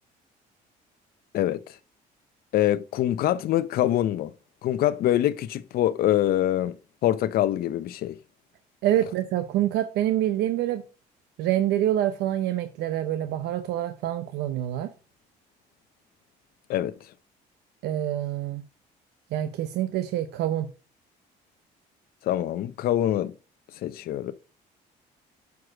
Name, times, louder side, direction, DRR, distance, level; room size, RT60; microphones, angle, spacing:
voice 1, 1.3-1.8 2.5-4.3 4.6-6.7 7.0-8.2 16.7-16.9 22.2-23.3 23.8-24.3, left 12 dB, 65° left, 0.5 m, -24 dB
voice 2, 8.8-10.8 11.4-14.9 17.8-18.6 19.3-20.7, right 12 dB, 80° right, 0.7 m, -26 dB
6.3 x 4.7 x 4.7 m
cardioid pair, 110°, 17 cm